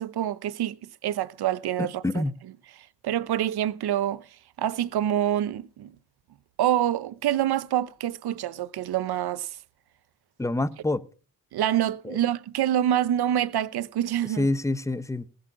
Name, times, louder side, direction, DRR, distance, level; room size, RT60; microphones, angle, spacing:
voice 1, 0.0-2.2 3.0-4.2 4.6-5.9 6.6-9.5 11.5-14.5, right 11 dB, 70° right, 0.9 m, -26 dB
voice 2, 1.8-2.3 10.4-11.0 12.0-12.2 14.4-15.3, left 2 dB, 10° left, 0.7 m, -27 dB
19.5 x 6.8 x 5.9 m
cardioid pair, 110°, 39 cm